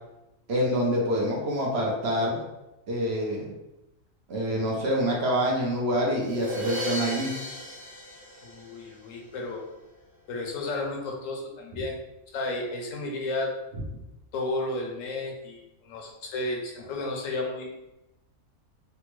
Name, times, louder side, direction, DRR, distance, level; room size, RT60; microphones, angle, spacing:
voice 1, 0.5-2.4 2.9-3.5 4.3-7.3, equal, 60° right, -3 dB, 0.9 m, -26 dB
sound 1, 6.2-9.2, left 1 dB, 35° right, 1.4 m, -35 dB
voice 2, 8.4-9.6 10.3-12.0 12.3-13.5 14.3-17.8, left 2 dB, 75° left, 1 dB, 1.0 m, -32 dB
3.3 x 2.1 x 3.0 m, 0.94 s
omnidirectional pair, 1.4 m